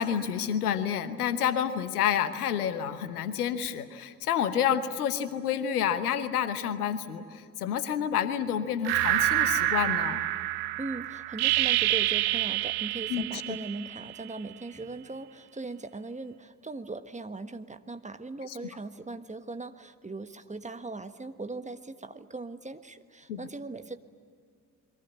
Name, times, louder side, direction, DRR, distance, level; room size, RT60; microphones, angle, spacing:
voice 1, 0.0-10.2 13.1-13.6 18.4-18.6 23.3-23.5, left 9 dB, 75° left, 13 dB, 1.1 m, -29 dB
sound 1, 8.9-14.3, right 16 dB, 55° right, 0.8 m, -27 dB
voice 2, 10.8-24.0, right 3 dB, 15° right, 9 dB, 1.3 m, -39 dB
28.5 x 22.5 x 7.9 m, 2.2 s
figure-of-eight pair, 40°, 45 cm